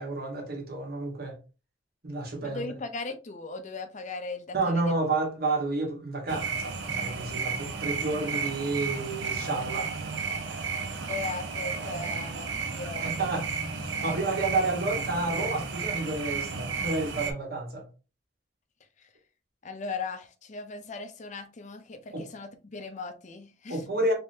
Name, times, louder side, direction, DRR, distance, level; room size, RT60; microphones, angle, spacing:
voice 1, 0.0-1.4 2.0-2.7 4.5-9.9 12.7-13.5 13.8-17.8 22.1-22.3 23.7-24.1, right 2 dB, 60° right, 1.2 m, -30 dB
voice 2, 2.4-4.8 11.0-13.4 13.9-14.2 19.0-19.1 19.6-23.8, left 3 dB, 45° left, 0.5 m, -38 dB
sound 1, 6.3-17.3, right 5 dB, 80° right, 0.6 m, -33 dB
3.4 x 3.2 x 2.7 m
head